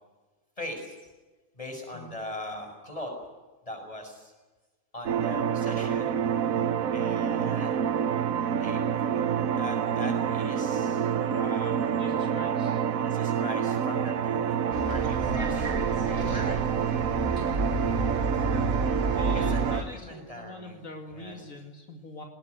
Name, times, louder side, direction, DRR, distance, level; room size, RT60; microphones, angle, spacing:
voice 1, 0.6-0.9 1.6-3.1 3.6-4.3 4.9-6.2 6.9-7.8 8.5-11.9 13.0-15.8 16.2-16.7 19.3-20.8 21.1-21.4, left 1 dB, 25° left, 3 dB, 6.7 m, -40 dB
sound 1, 5.1-19.8, right 8 dB, 85° right, 1.4 m, -27 dB
voice 2, 12.0-12.8 19.1-22.2, left 2 dB, 75° left, 3 dB, 2.7 m, -43 dB
Bus, 14.7-19.8, right 1 dB, 70° right, 5.5 m, -31 dB
20.0 x 20.0 x 9.5 m, 1.2 s
omnidirectional pair, 1.4 m